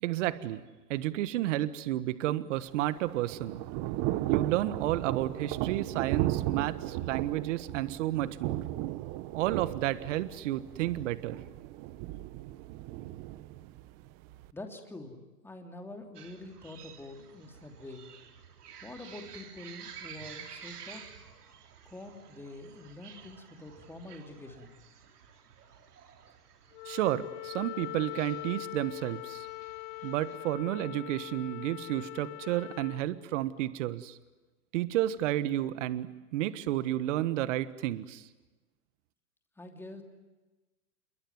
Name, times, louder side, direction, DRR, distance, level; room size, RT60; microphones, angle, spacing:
voice 1, 0.0-0.6 0.9-3.6 4.2-8.6 9.3-11.4 26.8-29.5 30.0-34.2 34.7-38.2, right 14 dB, 50° right, 14 dB, 1.5 m, -31 dB
Thunder / Rain, 2.6-14.5, right 16 dB, 30° right, 0.8 m, -35 dB
voice 2, 14.5-18.1 18.8-21.0 21.9-24.7 39.6-40.0, left 2 dB, 5° left, 4 dB, 2.9 m, -46 dB
sound 1, 16.1-30.4, right 7 dB, 80° right, 3.6 m, -51 dB
Wind instrument woodwind instrument, 26.7-33.0, left 22 dB, 50° left, 1.5 m, -42 dB
27.5 x 22.5 x 9.5 m, 1.2 s
hypercardioid pair, 140°, 46 cm